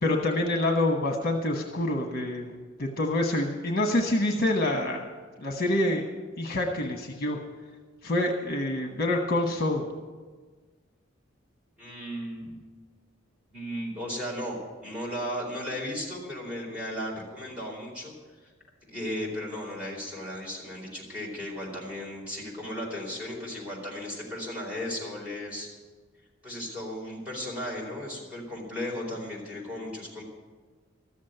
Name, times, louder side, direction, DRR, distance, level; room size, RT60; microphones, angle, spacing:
voice 1, 0.0-2.5 2.8-5.0 5.4-6.0 6.4-7.4 8.0-9.8, left 1 dB, 45° left, 2 dB, 1.2 m, -26 dB
voice 2, 11.8-12.6 13.5-14.6 14.8-18.1 18.4-18.5 18.9-25.7 26.4-30.2, left 1 dB, 5° right, -5 dB, 4.2 m, -35 dB
14.0 x 7.4 x 9.2 m, 1.4 s
head